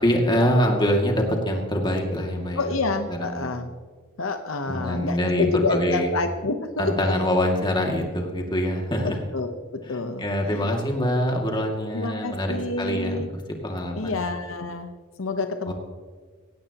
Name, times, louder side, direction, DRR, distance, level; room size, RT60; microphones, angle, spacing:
voice 1, 0.0-2.7 3.1-3.5 4.7-6.1 6.8-9.2 9.8-13.3 13.6-14.2 15.7-15.8, equal, 25° left, 1 dB, 2.3 m, -24 dB
voice 2, 2.6-3.7 4.2-7.1 9.0-9.6 9.9-10.7 11.0-11.1 11.9-13.3 13.9-14.9 15.2-15.7, left 3 dB, 85° left, 7 dB, 1.0 m, -28 dB
17.0 x 16.5 x 3.0 m, 1.5 s
head